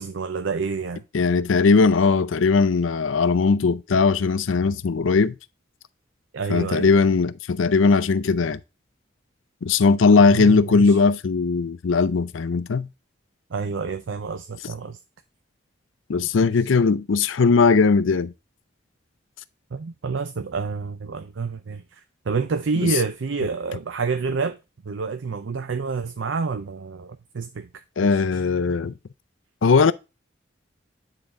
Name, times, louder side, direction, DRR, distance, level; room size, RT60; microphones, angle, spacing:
voice 1, 0.0-1.0 6.3-6.9 10.2-11.0 13.5-15.0 16.6-16.7 19.7-22.0 22.3-24.6 24.8-27.7 28.0-28.4, right 4 dB, 80° right, 0.5 m, -28 dB
voice 2, 1.1-5.3 6.5-8.6 9.6-12.9 16.1-18.3 22.8-22.9 28.0-28.9 29.6-29.9, left 4 dB, 90° left, 0.5 m, -19 dB
9.1 x 3.9 x 3.5 m
head